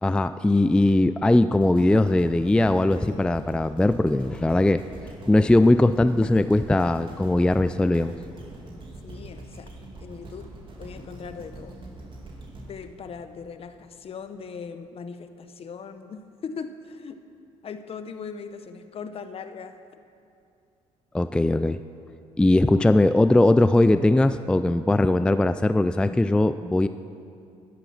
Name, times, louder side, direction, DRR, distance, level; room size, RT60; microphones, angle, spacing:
voice 1, 0.0-4.8 5.3-8.1 21.1-21.8 22.4-26.9, left 2 dB, 5° left, 12 dB, 0.3 m, -20 dB
sound 1, 1.6-13.8 14.3-14.4, right 1 dB, 40° right, 2.4 m, -43 dB
voice 2, 9.0-9.7 10.0-10.5 10.8-11.8 12.7-17.2 17.6-19.8, left 5 dB, 50° left, 9 dB, 0.9 m, -39 dB
12.0 x 11.5 x 5.8 m, 2.5 s
cardioid pair, 90°, 13 cm